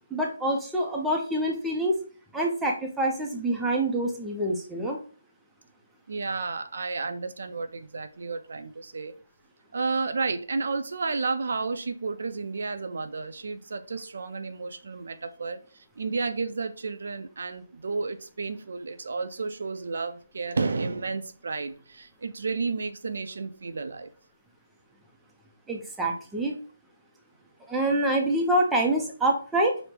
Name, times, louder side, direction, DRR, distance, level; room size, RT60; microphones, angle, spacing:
voice 1, 0.1-2.0 2.3-5.0 25.7-26.6 27.7-29.8, right 1 dB, 5° right, 0 dB, 0.5 m, -26 dB
voice 2, 6.1-9.1 9.7-24.1, right 4 dB, 60° right, 10 dB, 0.5 m, -32 dB
5.0 x 2.1 x 4.5 m, 0.40 s
hypercardioid pair, 170°, 0 cm